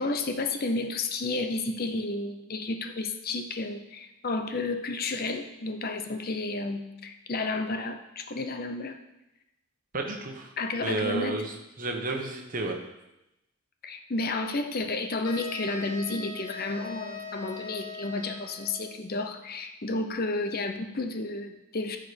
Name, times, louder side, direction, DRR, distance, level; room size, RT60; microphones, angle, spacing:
voice 1, 0.0-9.0 10.6-11.4 13.8-22.0, left 3 dB, 45° left, 6 dB, 0.7 m, -31 dB
voice 2, 9.9-11.5 11.8-12.8, right 2 dB, 40° right, 2 dB, 1.3 m, -32 dB
sound 1, 15.2-18.9, left 2 dB, 85° left, 1.1 m, -41 dB
14.0 x 5.1 x 5.2 m, 0.91 s
head